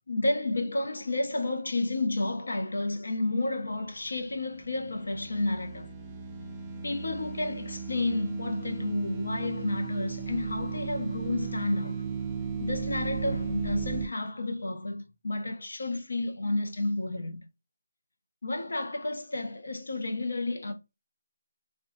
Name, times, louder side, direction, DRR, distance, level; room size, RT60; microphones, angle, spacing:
voice 1, 0.1-5.9 6.8-12.0 12.6-17.4 18.4-20.7, left 2 dB, 70° left, 0.6 m, -31 dB
sound 1, 4.2-14.1, right 6 dB, 15° right, 0.4 m, -36 dB
2.7 x 2.2 x 2.6 m
figure-of-eight pair, 160°, 0 cm